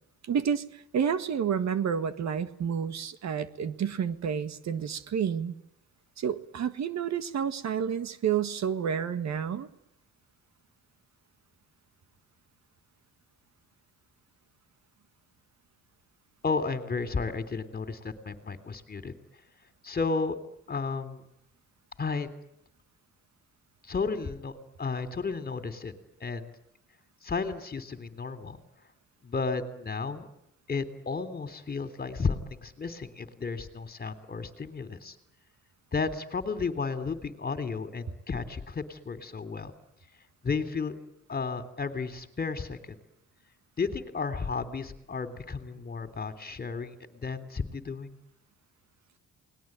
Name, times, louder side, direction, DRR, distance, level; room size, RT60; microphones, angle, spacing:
voice 1, 0.2-5.5 6.2-9.7, right 7 dB, 60° right, 11 dB, 1.8 m, -30 dB
voice 2, 16.4-19.1 19.8-20.4 20.7-21.2 22.0-22.3 23.9-25.9 26.2-26.5 27.2-28.6 29.2-30.3 30.7-35.1 35.9-39.7 40.4-41.0 41.3-43.0 43.8-48.1, left 4 dB, 30° left, 10 dB, 3.3 m, -33 dB
29.0 x 20.5 x 9.0 m, 0.79 s
cardioid pair, 90°, 30 cm